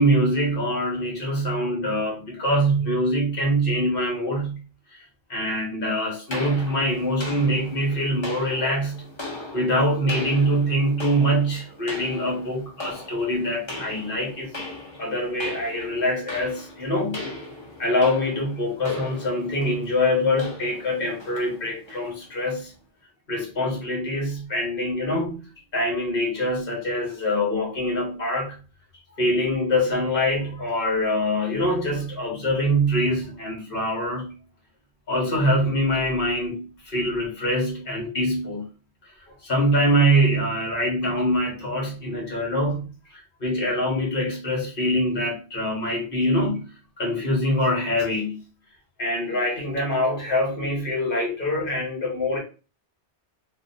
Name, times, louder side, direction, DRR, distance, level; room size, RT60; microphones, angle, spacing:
voice 1, 0.0-4.6 4.9-9.0 9.5-14.5 15.0-17.2 17.8-22.7 23.3-25.4 25.7-28.6 29.1-34.3 35.1-38.6 39.0-39.1 39.4-46.6 47.0-48.4 49.0-52.4, equal, 55° left, 1.4 m, -24 dB
sound 1, 6.3-22.7, left 1 dB, 30° left, 0.9 m, -39 dB
2.9 x 2.2 x 3.9 m
omnidirectional pair, 1.1 m